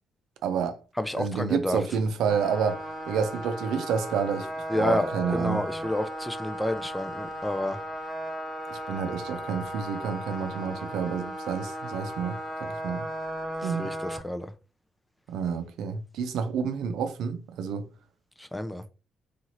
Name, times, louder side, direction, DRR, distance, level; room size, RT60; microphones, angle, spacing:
voice 1, 0.4-0.8 1.2-4.5 4.7-5.6 8.7-13.0 13.6-13.9 15.3-17.9, right 6 dB, 85° right, 0.4 m, -29 dB
voice 2, 1.0-1.8 4.7-7.8 13.8-14.5 18.4-18.8, left 1 dB, 10° left, 0.3 m, -29 dB
sound 1, 2.3-14.2, equal, 25° right, 1.1 m, -36 dB
2.7 x 2.4 x 2.9 m
cardioid pair, 90°, 0 cm